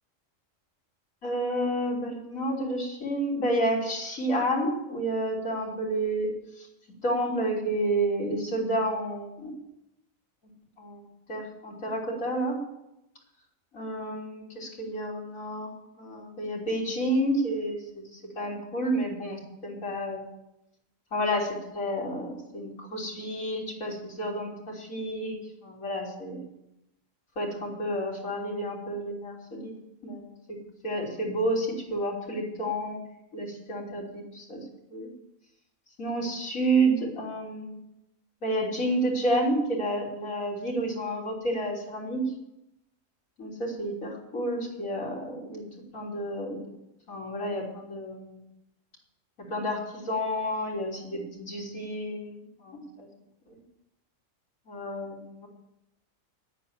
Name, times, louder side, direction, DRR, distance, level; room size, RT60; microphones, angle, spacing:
voice 1, 1.2-6.3 6.6-6.7 7.0-9.5 10.8-11.0 11.3-12.6 13.7-15.7 16.0-20.2 21.1-26.4 27.4-29.7 30.0-30.3 30.8-33.0 33.3-34.6 34.9-35.1 36.0-37.8 38.4-42.2 43.4-45.6 45.9-46.6 47.1-48.4 49.5-53.1 54.7-55.5, right 1 dB, 80° left, -3 dB, 3.9 m, -30 dB
10.0 x 9.9 x 8.6 m, 0.86 s
omnidirectional pair, 1.4 m